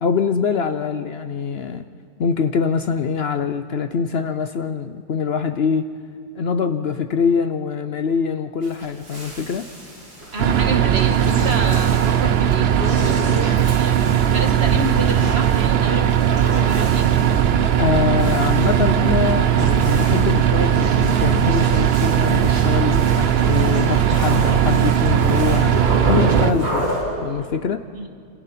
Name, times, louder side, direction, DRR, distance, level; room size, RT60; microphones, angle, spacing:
voice 1, 0.0-1.8 2.2-6.0 6.3-9.7 17.8-25.7 26.1-26.9 27.2-27.8, left 6 dB, 65° left, 9 dB, 0.6 m, -23 dB
sound 1, 8.6-27.0, right 1 dB, 80° right, 6.4 m, -32 dB
voice 2, 10.3-14.0 14.3-17.1 27.9-28.1, right 2 dB, 40° right, 4 dB, 1.8 m, -29 dB
sound 2, 10.4-26.5, right 9 dB, 55° right, 0.7 m, -18 dB
27.0 x 27.0 x 4.3 m, 2.2 s
omnidirectional pair, 1.8 m